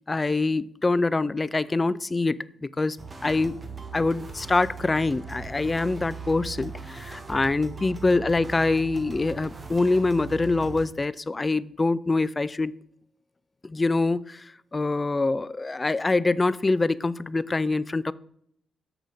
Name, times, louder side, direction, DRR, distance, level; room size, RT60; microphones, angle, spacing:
voice 1, 0.1-3.0 3.2-3.6 3.9-12.7 13.6-18.1, left 3 dB, 25° left, 19 dB, 0.3 m, -25 dB
sound 1, 3.0-10.9, right 5 dB, 30° right, 1.1 m, -39 dB
7.4 x 7.0 x 3.6 m, 0.68 s
cardioid pair, 70°, 0 cm